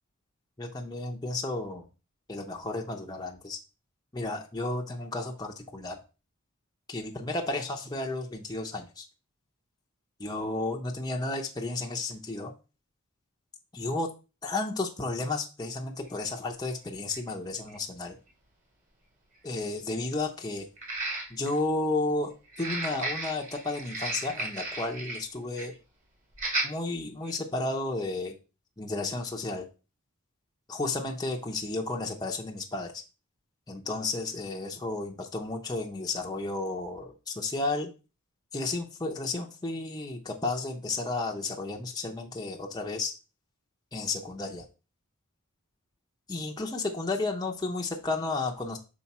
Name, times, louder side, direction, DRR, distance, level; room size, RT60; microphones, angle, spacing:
voice 1, 0.6-1.9 2.3-3.6 4.1-6.0 6.9-9.0 10.2-12.5 13.7-14.1 14.4-18.2 19.4-20.7 21.3-22.3 22.6-25.7 26.6-28.4 28.8-29.7 30.7-33.0 33.7-37.9 38.5-43.1 43.9-44.6 46.3-48.8, left 2 dB, 20° left, 0 dB, 0.7 m, -32 dB
sound 1, 16.1-16.2 17.1-17.2 17.7-17.8 20.8-21.6 22.5-25.2 25.5-25.7 26.3-26.7 27.2-27.4, right 2 dB, 35° right, 1.7 m, -34 dB
5.9 x 4.5 x 4.2 m, 0.31 s
head